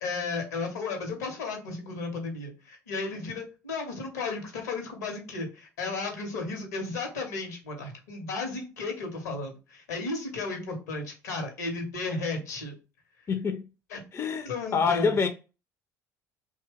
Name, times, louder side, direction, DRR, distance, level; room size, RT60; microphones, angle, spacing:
voice 1, 0.0-12.7 13.9-14.0 14.4-15.2, left 3 dB, 75° left, 0.8 m, -34 dB
voice 2, 13.3-13.7 14.1-15.3, left 5 dB, 30° left, 0.4 m, -26 dB
2.8 x 2.1 x 3.4 m
figure-of-eight pair, 55°, 9 cm